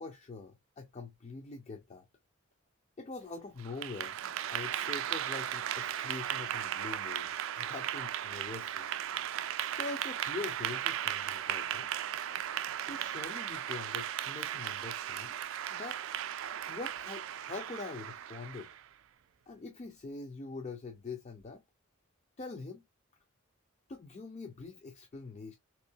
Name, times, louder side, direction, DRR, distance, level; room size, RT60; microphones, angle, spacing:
voice 1, 0.0-2.1 3.0-4.2 4.5-8.9 9.7-11.9 12.8-15.4 15.7-18.7 19.5-21.6 22.4-22.8 23.9-25.5, left 3 dB, 30° left, 0.4 m, -44 dB
Clapping / Applause, 3.6-18.9, right 10 dB, 65° right, 0.3 m, -36 dB
3.4 x 2.9 x 2.7 m
head